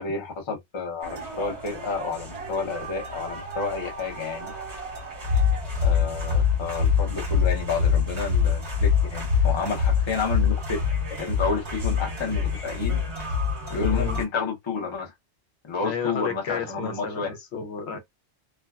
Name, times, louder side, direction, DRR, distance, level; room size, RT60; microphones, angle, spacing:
voice 1, 0.0-4.5 5.8-10.8 11.2-13.0 13.7-15.1 15.7-17.3, left 4 dB, 30° left, 0.6 m, -30 dB
sound 1, 1.0-14.2, left 6 dB, 75° right, 1.7 m, -26 dB
voice 2, 13.9-14.2 15.8-18.0, left 6 dB, 75° left, 0.9 m, -32 dB
3.2 x 2.1 x 2.3 m
omnidirectional pair, 1.2 m